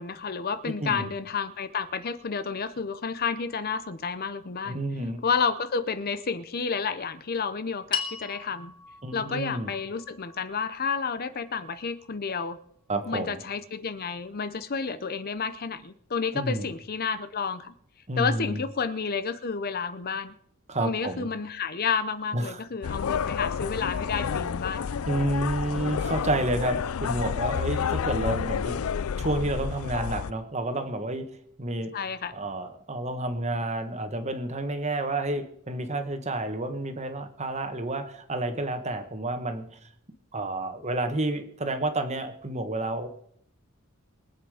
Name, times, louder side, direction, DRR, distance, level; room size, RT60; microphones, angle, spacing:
voice 1, 0.0-4.8 5.2-8.7 9.1-12.6 13.1-17.7 18.2-20.3 20.8-24.9 31.9-32.4, left 5 dB, 45° left, 13 dB, 0.7 m, -30 dB
voice 2, 0.6-1.1 4.6-5.3 9.0-9.7 12.9-13.4 16.3-16.7 18.1-18.6 20.7-21.3 22.3-22.9 25.1-28.9 29.2-31.3 31.6-32.0 32.3-39.9 40.3-43.1, right 2 dB, 30° right, 7 dB, 1.4 m, -30 dB
sound 1, 7.9-12.4, left 7 dB, 20° left, 3.8 m, -39 dB
sound 2, 22.8-30.3, left 7 dB, 90° left, 0.4 m, -30 dB
23.5 x 8.5 x 4.9 m, 0.69 s
head